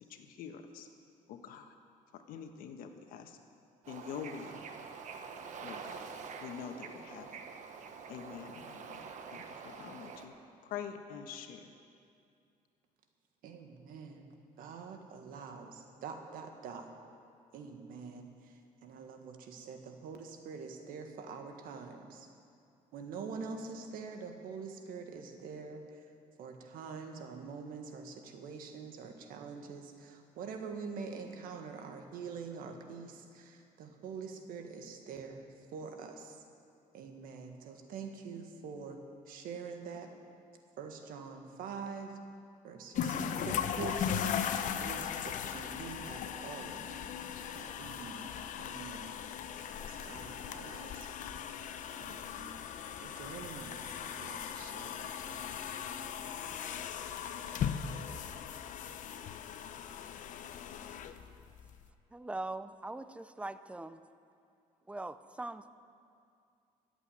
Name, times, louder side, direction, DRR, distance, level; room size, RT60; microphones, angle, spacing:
voice 1, 0.1-0.9 1.3-1.7 2.1-3.4 3.9-4.6 5.6-6.1 6.4-7.4 8.1-10.3 10.6-11.6, left 7 dB, 80° left, 6 dB, 1.3 m, -45 dB
Bird / Ocean, 3.8-10.3, right 5 dB, 60° right, 1.3 m, -46 dB
voice 2, 13.4-14.3 14.6-16.8 17.5-18.3 18.8-22.3 22.9-25.8 26.4-35.4 35.7-36.4 36.9-39.0 39.3-40.1 40.8-42.1 42.6-43.2 43.4-44.4 44.8-46.8 47.5-49.2 49.7-51.1 52.0-52.5 53.0-55.5, right 5 dB, 80° right, 5 dB, 1.7 m, -45 dB
sound 1, 43.0-61.8, left 8 dB, 65° left, 0.8 m, -38 dB
voice 3, 62.1-64.0 64.9-65.7, right 2 dB, 10° right, 13 dB, 0.5 m, -41 dB
14.5 x 8.2 x 9.4 m, 2.5 s
cardioid pair, 105°, 14 cm